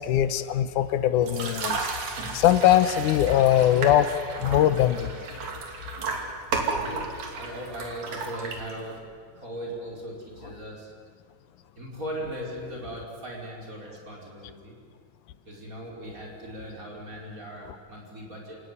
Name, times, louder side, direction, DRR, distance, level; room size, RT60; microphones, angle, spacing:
voice 1, 0.0-1.9 2.3-5.1, left 11 dB, 85° left, 13 dB, 2.4 m, -21 dB
sound 1, 1.2-9.0, right 4 dB, 65° right, 4.0 m, -33 dB
voice 2, 6.7-9.0 9.3-10.9 11.8-14.8 15.5-18.6, right 1 dB, 25° right, -1 dB, 5.2 m, -38 dB
28.5 x 18.0 x 9.6 m, 2.1 s
omnidirectional pair, 3.5 m